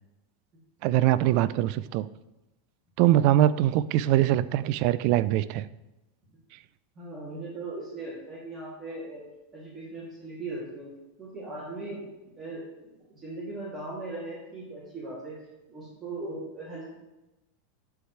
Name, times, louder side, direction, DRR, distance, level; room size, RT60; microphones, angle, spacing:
voice 1, 0.8-2.1 3.0-5.7, right 13 dB, 55° right, 17 dB, 0.3 m, -22 dB
voice 2, 6.9-9.2 9.5-10.9 11.2-12.0 12.4-15.4 15.7-17.0, right 2 dB, 25° right, -8 dB, 2.8 m, -39 dB
11.0 x 4.8 x 3.3 m, 0.98 s
hypercardioid pair, 110°, 0 cm